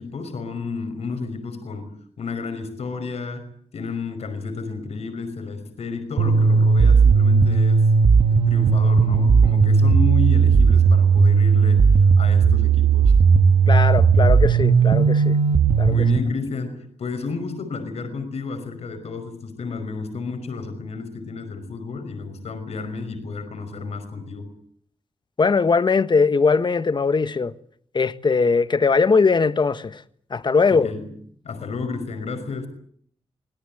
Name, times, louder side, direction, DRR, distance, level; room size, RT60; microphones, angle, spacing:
voice 1, 0.0-7.9 8.3-13.2 15.8-24.5 30.7-31.1 31.4-32.7, left 4 dB, 80° left, 5.4 m, -31 dB
sound 1, 6.2-16.2, right 5 dB, 80° right, 1.4 m, -16 dB
voice 2, 13.7-15.4 15.8-15.9 25.4-27.5 27.9-30.0 30.3-30.9, left 4 dB, 45° left, 1.5 m, -20 dB
25.0 x 18.5 x 9.3 m
cardioid pair, 80°, 11 cm